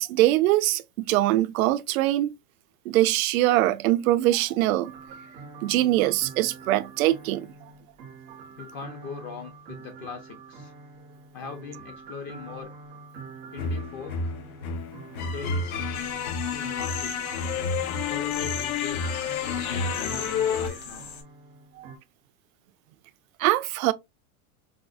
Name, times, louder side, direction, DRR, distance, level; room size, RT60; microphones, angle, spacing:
voice 1, 0.0-2.3 2.9-4.9 5.6-7.5 21.8-21.9 23.4-23.9, right 15 dB, 70° right, 0.5 m, -23 dB
sound 1, 4.8-22.0, right 4 dB, 15° right, 0.3 m, -46 dB
voice 2, 8.6-10.7 11.3-12.7 13.5-14.3 15.2-15.9 16.5-17.4 18.1-21.1, left 6 dB, 35° left, 0.6 m, -40 dB
sound 2, 13.6-20.7, left 5 dB, 75° left, 0.9 m, -30 dB
sound 3, 15.9-21.2, left 7 dB, 55° left, 1.5 m, -39 dB
4.8 x 2.0 x 2.4 m
supercardioid pair, 160°, 43 cm